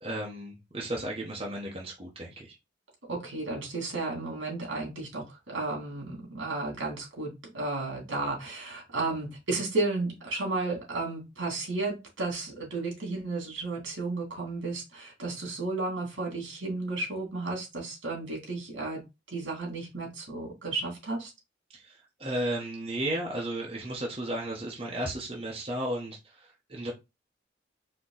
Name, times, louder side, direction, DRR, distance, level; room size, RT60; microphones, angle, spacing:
voice 1, 0.0-2.5 21.7-26.9, right 1 dB, 30° right, 1.0 m, -34 dB
voice 2, 3.1-19.0 19.3-21.3, right 3 dB, 80° right, 2.5 m, -33 dB
4.5 x 3.0 x 3.9 m
head